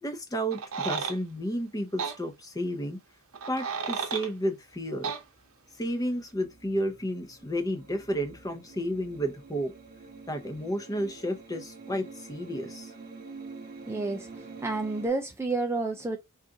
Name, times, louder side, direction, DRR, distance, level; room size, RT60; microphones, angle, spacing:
voice 1, 0.0-3.0 3.5-5.1 5.8-9.7 10.3-12.9, equal, 15° left, 0.7 m, -32 dB
sound 1, 0.5-1.2 2.0-2.2 3.3-4.3 5.0-5.2, right 6 dB, 75° right, 0.8 m, -32 dB
sound 2, 4.7-15.1, right 4 dB, 45° right, 1.0 m, -47 dB
voice 2, 13.9-16.2, right 3 dB, 10° right, 0.4 m, -30 dB
3.9 x 2.5 x 3.6 m
head